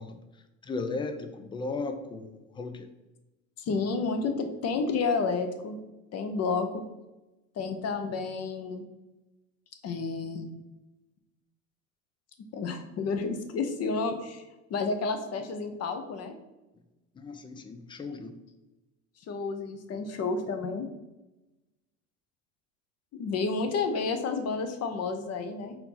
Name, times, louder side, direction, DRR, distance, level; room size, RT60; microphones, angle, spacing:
voice 1, 0.0-2.9 17.1-18.4, left 3 dB, 15° left, 7 dB, 0.3 m, -36 dB
voice 2, 3.6-5.8 6.1-6.8 7.6-8.8 9.8-10.5 12.5-14.4 14.7-16.3 19.3-20.9 23.1-25.8, left 4 dB, 40° left, 7 dB, 0.7 m, -30 dB
4.4 x 2.8 x 3.8 m, 1.0 s
supercardioid pair, 90°, 38 cm